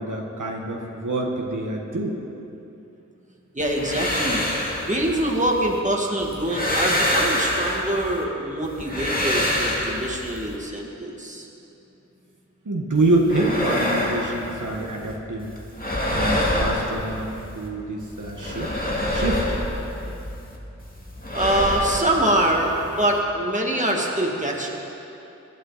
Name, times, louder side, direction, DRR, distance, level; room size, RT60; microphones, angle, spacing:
voice 1, 0.0-2.2 12.6-15.5 16.1-17.3 17.5-18.7 19.1-19.6, right 2 dB, 85° right, -1 dB, 1.5 m, -26 dB
voice 2, 3.5-4.4 4.9-11.4 21.3-24.7, right 1 dB, 25° right, -1 dB, 2.2 m, -24 dB
sound 1, 3.6-5.8 6.2-8.2 8.6-10.6 13.0-15.2 15.4-17.7 18.0-20.6 20.8-23.2, left 1 dB, 30° left, 2.3 m, -27 dB
22.0 x 11.5 x 4.2 m, 2.8 s
wide cardioid pair, 50°, 30 cm